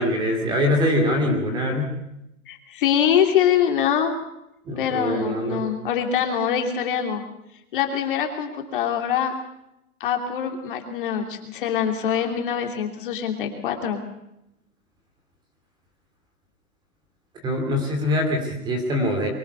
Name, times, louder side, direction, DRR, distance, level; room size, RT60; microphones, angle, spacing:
voice 1, 0.0-1.9 4.7-5.7 17.4-19.3, left 1 dB, 10° right, 4 dB, 2.8 m, -23 dB
voice 2, 2.5-4.1 4.8-7.2 7.7-9.3 10.0-14.0, left 8 dB, 35° left, 4 dB, 3.1 m, -24 dB
23.5 x 17.0 x 6.9 m, 0.83 s
hypercardioid pair, 165°, 43 cm